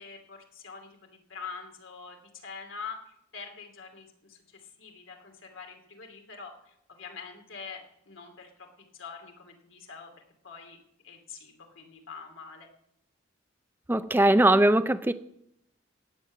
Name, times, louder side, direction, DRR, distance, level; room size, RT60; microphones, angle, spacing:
voice 1, 0.0-3.0 3.3-10.1 10.4-10.8 11.0-12.7, left 5 dB, 85° left, 4 dB, 2.9 m, -45 dB
voice 2, 13.9-15.1, right 1 dB, 10° right, 12 dB, 0.5 m, -20 dB
15.5 x 7.4 x 9.2 m, 0.77 s
head